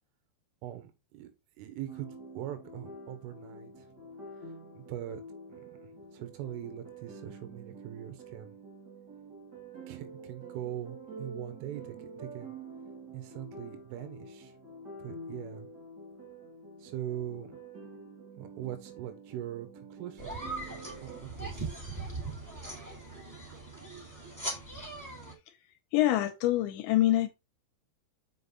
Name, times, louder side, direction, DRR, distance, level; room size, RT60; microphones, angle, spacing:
voice 1, 0.6-1.3 1.6-2.1 2.4-3.9 4.4-5.2 5.6-8.6 9.9-12.6 13.1-14.5 15.0-15.7 16.8-17.6 18.4-20.6 21.0-21.8, right 12 dB, 85° right, 3.9 m, -42 dB
sound 1, 1.9-21.2, right 2 dB, 45° right, 1.3 m, -47 dB
sound 2, 20.2-25.3, right 2 dB, 5° right, 1.8 m, -40 dB
voice 2, 25.9-27.3, left 14 dB, 80° left, 2.9 m, -25 dB
7.2 x 5.3 x 4.0 m
omnidirectional pair, 5.6 m